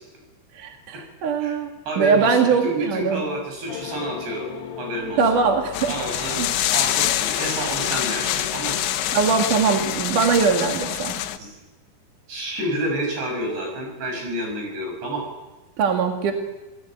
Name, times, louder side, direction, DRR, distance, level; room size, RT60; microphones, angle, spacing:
voice 1, 0.5-3.2 5.2-5.9 6.4-6.5 9.1-11.2 15.8-16.3, right 5 dB, 55° right, 3 dB, 3.1 m, -21 dB
voice 2, 1.9-4.5 4.8-5.3 5.9-6.4 6.7-8.8 11.4-11.6 12.3-15.2, right 1 dB, 70° right, 2 dB, 9.0 m, -29 dB
sound 1, 3.7-7.8, left 9 dB, 60° left, 3.1 m, -38 dB
sound 2, 5.7-11.4, left 12 dB, 80° left, 3.3 m, -25 dB
28.5 x 19.0 x 9.1 m, 1.1 s
omnidirectional pair, 5.1 m